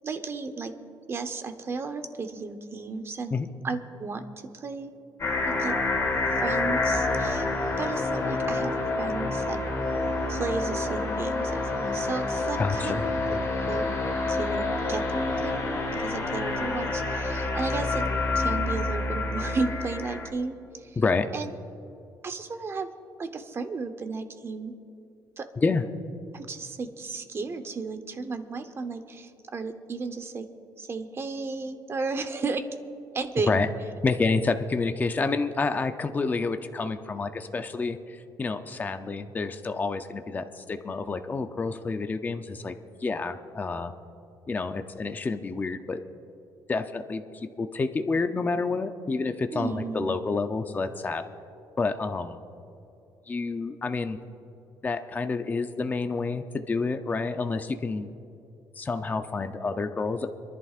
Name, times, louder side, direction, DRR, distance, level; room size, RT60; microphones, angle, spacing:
voice 1, 0.0-0.7 1.1-3.4 3.6-4.2 4.5-4.9 5.4-5.8 6.4-7.5 7.8-9.6 10.3-13.1 13.6-13.9 14.3-18.0 18.3-21.0 21.3-21.5 22.2-22.9 23.2-24.7 25.4-25.5 26.3-30.5 30.8-32.6 33.1-33.6 49.5-50.1, right 4 dB, 35° right, 8 dB, 0.9 m, -34 dB
sound 1, 5.2-20.3, left 2 dB, 40° left, 2.0 m, -28 dB
voice 2, 12.6-13.0 21.0-21.3 25.6-25.9 33.5-33.7 34.0-42.7 43.0-43.9 44.5-46.0 46.7-51.2 51.8-52.4 53.3-54.2 54.8-58.1 58.8-60.3, left 4 dB, 20° left, 8 dB, 0.5 m, -29 dB
30.0 x 11.0 x 2.5 m, 2.8 s
cardioid pair, 135°, 8 cm